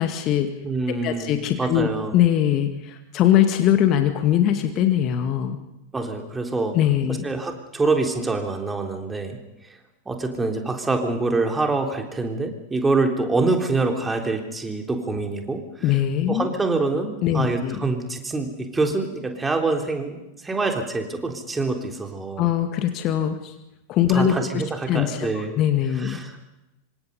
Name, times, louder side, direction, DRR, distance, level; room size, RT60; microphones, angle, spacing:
voice 1, 0.0-0.5 1.0-5.6 6.7-7.2 15.8-16.5 17.2-17.8 22.4-23.5 23.9-24.6 24.9-26.2, left 10 dB, 35° left, 7 dB, 2.1 m, -21 dB
voice 2, 0.6-1.3 1.6-2.2 5.9-6.7 7.1-9.4 10.1-15.9 16.3-22.5 24.1-25.6 25.9-26.4, right 3 dB, 10° right, 3 dB, 3.7 m, -25 dB
27.0 x 25.5 x 5.5 m, 0.94 s
figure-of-eight pair, 90°, 0 cm